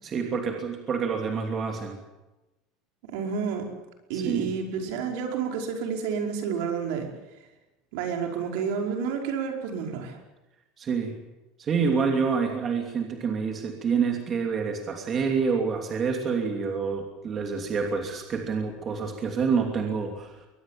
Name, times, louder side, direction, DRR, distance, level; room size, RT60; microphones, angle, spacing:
voice 1, 0.0-2.0 4.1-4.4 10.8-11.2 11.6-20.5, right 5 dB, 25° right, 3 dB, 2.8 m, -27 dB
voice 2, 3.1-3.7 4.1-7.1 7.9-10.2, right 6 dB, 70° right, 2 dB, 5.0 m, -30 dB
23.0 x 20.0 x 7.5 m, 1.0 s
cardioid pair, 155°, 0 cm